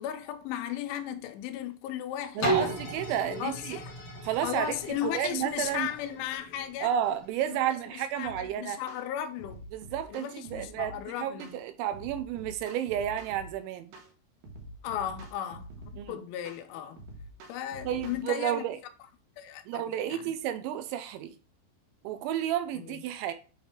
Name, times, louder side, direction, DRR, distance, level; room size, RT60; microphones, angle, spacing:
voice 1, 0.0-2.7 3.3-3.9 4.4-6.9 7.5-7.6 8.1-9.6 10.1-11.6 14.8-17.0 17.5-18.6 19.4-20.3 22.7-23.0, left 11 dB, 80° left, 3.2 m, -36 dB
sound 1, 2.4-8.1 8.7-8.8, right 1 dB, 60° left, 1.4 m, -36 dB
voice 2, 2.4-3.8 4.2-4.8 5.0-5.9 6.8-8.8 9.7-13.9 16.0-16.2 17.8-18.8 19.7-21.3 22.0-23.3, right 10 dB, 85° right, 2.9 m, -31 dB
sound 2, 8.2-8.5 8.9-9.1 9.4-11.0 11.4-11.6 11.9-13.5 13.9-14.1 14.4-16.0 16.5-16.6 17.0-18.2, right 1 dB, 65° right, 2.5 m, -46 dB
8.1 x 3.2 x 4.4 m
omnidirectional pair, 5.6 m